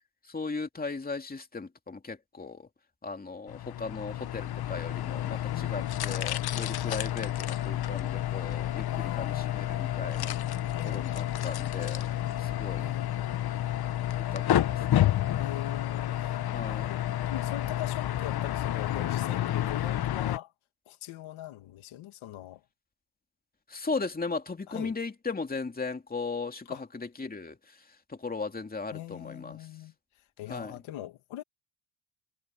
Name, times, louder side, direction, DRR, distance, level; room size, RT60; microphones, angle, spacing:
voice 1, 0.3-2.7 3.0-10.3 10.8-12.1 12.4-12.9 14.3-15.0 16.5-16.9 23.7-27.8 28.1-29.6 30.5-30.8, left 4 dB, 20° left, 2.6 m, -37 dB
sound 1, 3.5-20.4, left 12 dB, 50° left, 1.1 m, -30 dB
voice 2, 5.4-6.2 8.9-9.8 10.7-11.3 12.8-13.6 15.4-16.4 16.7-20.5 20.9-22.6 24.7-24.9 26.7-26.9 28.9-29.9 30.4-31.4, left 13 dB, 80° left, 2.4 m, -42 dB
cardioid pair, 100°, 48 cm